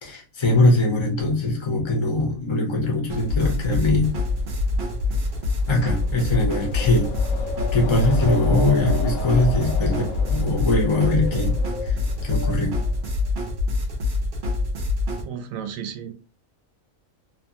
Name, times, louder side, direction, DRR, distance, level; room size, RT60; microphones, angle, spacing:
voice 1, 0.0-4.1 5.7-7.1 7.7-10.0 10.3-11.6 11.8-12.0 12.2-12.8, left 2 dB, 30° left, 0.5 m, -21 dB
sound 1, 3.1-15.2, left 3 dB, 55° right, 0.7 m, -25 dB
Wind, 3.2-13.3, left 1 dB, 65° left, 0.9 m, -32 dB
voice 2, 15.2-16.1, right 8 dB, 75° right, 0.9 m, -33 dB
2.9 x 2.2 x 2.7 m
omnidirectional pair, 1.5 m